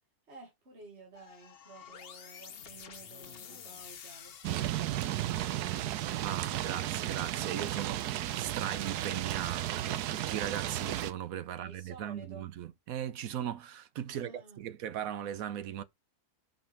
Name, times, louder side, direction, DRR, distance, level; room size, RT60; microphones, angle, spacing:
voice 1, 0.3-6.6 11.5-12.5 14.1-14.8, right 3 dB, 45° right, 2.1 m, -53 dB
sound 1, 1.1-5.4, left 7 dB, 50° left, 0.8 m, -50 dB
sound 2, 4.4-11.1, right 13 dB, 90° right, 1.2 m, -34 dB
voice 2, 6.2-15.8, right 10 dB, 70° right, 1.0 m, -38 dB
5.2 x 5.2 x 4.6 m
omnidirectional pair, 1.6 m